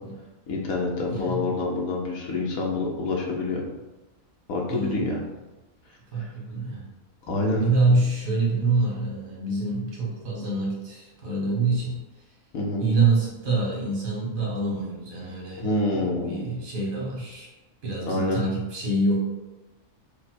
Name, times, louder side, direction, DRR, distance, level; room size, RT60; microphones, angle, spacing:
voice 1, 0.5-3.6 4.5-5.2 6.2-6.3 7.3-7.6 12.5-12.8 15.6-16.5 18.1-18.4, left 2 dB, 90° left, -1 dB, 1.4 m, -27 dB
voice 2, 1.1-1.5 4.7-5.0 6.1-6.8 7.5-12.0 12.8-15.7 16.0-17.5 17.8-19.2, right 3 dB, 85° right, -4 dB, 1.8 m, -26 dB
5.3 x 2.2 x 4.5 m, 1.1 s
omnidirectional pair, 1.4 m